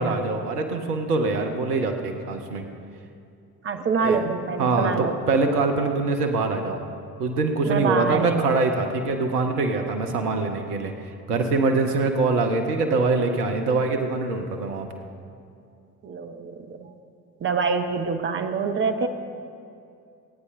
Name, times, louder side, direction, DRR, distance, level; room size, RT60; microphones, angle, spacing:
voice 1, 0.0-2.6 4.0-6.8 7.2-10.9 11.3-14.9, right 3 dB, 75° right, 5 dB, 1.0 m, -24 dB
voice 2, 3.6-5.1 7.6-8.5 16.0-16.9 17.4-19.1, right 5 dB, 25° right, 6 dB, 0.8 m, -26 dB
29.0 x 9.7 x 2.7 m, 2.5 s
figure-of-eight pair, 50°, 47 cm